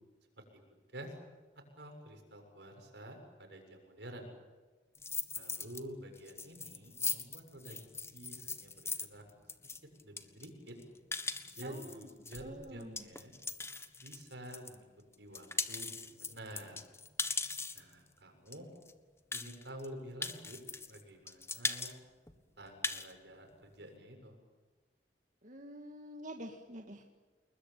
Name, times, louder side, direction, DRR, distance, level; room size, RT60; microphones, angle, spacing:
voice 1, 0.7-1.2 1.7-4.3 5.3-9.2 10.0-10.8 11.5-13.3 14.0-14.9 15.2-16.8 17.7-18.7 19.3-20.6 20.9-21.9 22.3-24.4, right 1 dB, 75° right, 4 dB, 7.2 m, -49 dB
sound 1, 5.0-5.8 6.2-14.8 15.1-17.9 18.5-18.6 18.8-18.9 19.3-19.9 20.2-21.0 21.3-21.9 22.3-22.4 22.7-23.1, left 4 dB, 15° left, 1.5 m, -39 dB
voice 2, 11.6-12.1 12.4-13.0 25.4-27.0, right 1 dB, 45° right, 3 dB, 2.1 m, -47 dB
30.0 x 21.5 x 9.1 m, 1.3 s
head